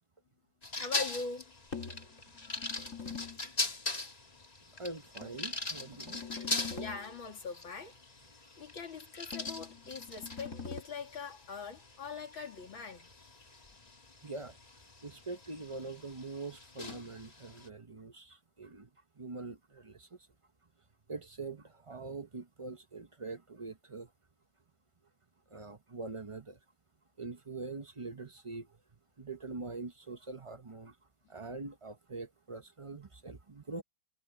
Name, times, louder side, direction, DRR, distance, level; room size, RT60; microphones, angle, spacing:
sound 1, 0.6-17.7, left 3 dB, 20° left, 1.4 m, -41 dB
voice 1, 0.8-1.4 6.8-7.9 8.6-13.1, left 4 dB, 75° left, 3.5 m, -42 dB
sound 2, 1.7-3.5 5.2-7.2 9.3-10.8, left 5 dB, 40° left, 4.6 m, -44 dB
voice 2, 4.8-6.2 14.2-14.6 15.0-18.9 19.2-20.1 21.1-24.1 25.5-26.6 27.2-28.7 29.2-30.9 31.3-33.8, right 3 dB, 40° right, 0.4 m, -43 dB
omnidirectional pair, 2.2 m